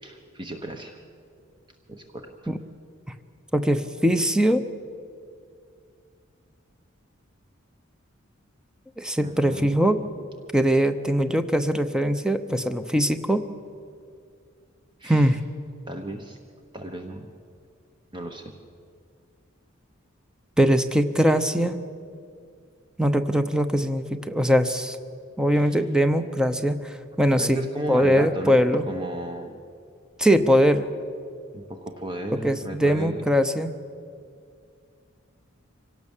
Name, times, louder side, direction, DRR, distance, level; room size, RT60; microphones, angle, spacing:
voice 1, 0.0-1.0 1.9-2.3 9.2-9.7 15.0-15.3 15.9-16.4 16.7-17.3 18.1-18.5 25.5-25.8 27.3-28.6 28.9-29.6 31.5-33.2, right 1 dB, 25° right, 4 dB, 1.1 m, -34 dB
voice 2, 3.5-4.6 9.0-10.0 10.5-13.4 15.0-15.4 20.6-21.8 23.0-25.0 25.4-27.6 27.9-28.8 30.2-30.9 32.3-33.7, equal, 5° right, 9 dB, 0.7 m, -21 dB
25.5 x 18.0 x 7.3 m, 2.3 s
head